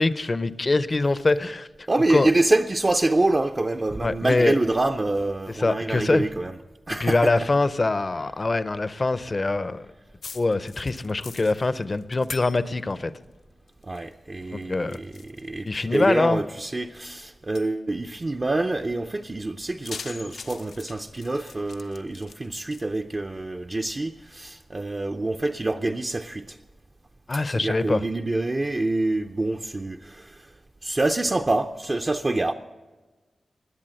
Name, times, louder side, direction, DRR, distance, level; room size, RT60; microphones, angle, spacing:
voice 1, 0.0-1.7 2.1-2.3 4.0-4.5 5.6-6.2 7.0-9.8 10.3-13.1 14.5-15.0 15.6-16.4 27.3-28.0, left 3 dB, 30° left, 0.5 m, -23 dB
voice 2, 1.9-6.6 6.9-7.5 13.8-26.6 27.4-32.5, right 2 dB, 25° right, 0.5 m, -26 dB
sound 1, 10.2-13.0 13.2-14.1 14.4-16.4 16.9-17.0 17.6-17.7 19.6-22.8, left 5 dB, 80° left, 0.7 m, -43 dB
20.0 x 8.2 x 7.6 m
wide cardioid pair, 160°, 0 cm